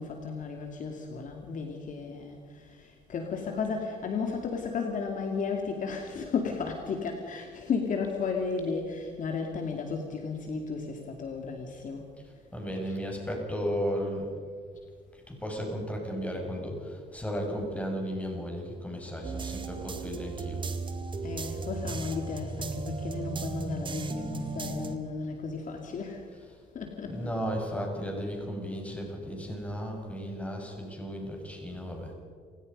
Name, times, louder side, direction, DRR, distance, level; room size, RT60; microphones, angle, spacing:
voice 1, 0.0-12.0 12.9-13.0 19.2-19.3 21.2-26.2 26.7-27.3, left 5 dB, 50° left, 3 dB, 2.6 m, -34 dB
voice 2, 12.5-14.3 15.3-20.6 27.0-32.1, equal, 10° left, 0 dB, 6.8 m, -34 dB
sound 1, 19.2-25.0, right 4 dB, 30° right, 1.9 m, -35 dB
29.5 x 17.5 x 5.5 m, 2.1 s
cardioid pair, 110°, 17 cm